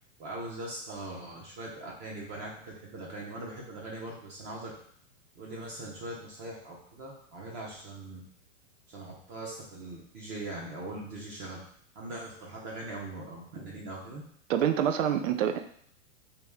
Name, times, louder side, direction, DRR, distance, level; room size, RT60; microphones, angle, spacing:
voice 1, 0.2-4.7 5.4-8.2 8.9-11.6 11.9-14.2, right 2 dB, 30° right, -3 dB, 0.8 m, -41 dB
voice 2, 14.5-15.6, right 9 dB, 85° right, 7 dB, 0.6 m, -26 dB
2.9 x 2.9 x 3.5 m, 0.63 s
hypercardioid pair, 145°, 37 cm